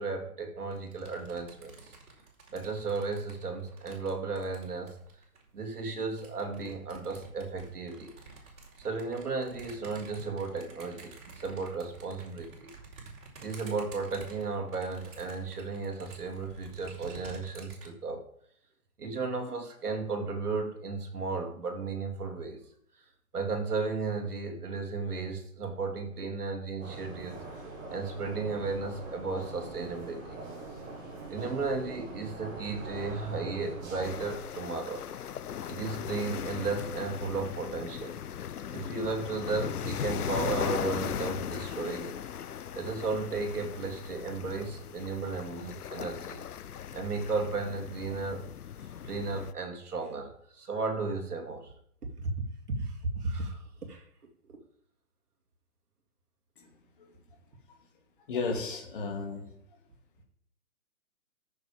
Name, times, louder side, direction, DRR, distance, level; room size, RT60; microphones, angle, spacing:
voice 1, 0.0-1.9 2.5-5.0 5.5-8.1 8.8-12.7 13.4-18.2 19.0-22.6 23.3-27.6 27.9-30.4 31.3-35.1 35.7-38.2 38.7-42.2 42.7-46.4 46.9-48.4 49.0-51.7 52.2-52.3 52.8-54.0 54.5-54.6, right 4 dB, 80° right, 3 dB, 3.0 m, -34 dB
sound 1, 0.7-5.5 6.1-17.9, right 4 dB, 60° right, 4.9 m, -50 dB
sound 2, 26.8-34.4, right 2 dB, 10° right, 1.7 m, -43 dB
sound 3, 34.0-49.5, left 9 dB, 75° left, 0.8 m, -38 dB
voice 2, 58.3-59.5, left 4 dB, 35° left, 2 dB, 2.2 m, -34 dB
14.0 x 6.9 x 5.1 m, 0.68 s
hypercardioid pair, 170°, 45 cm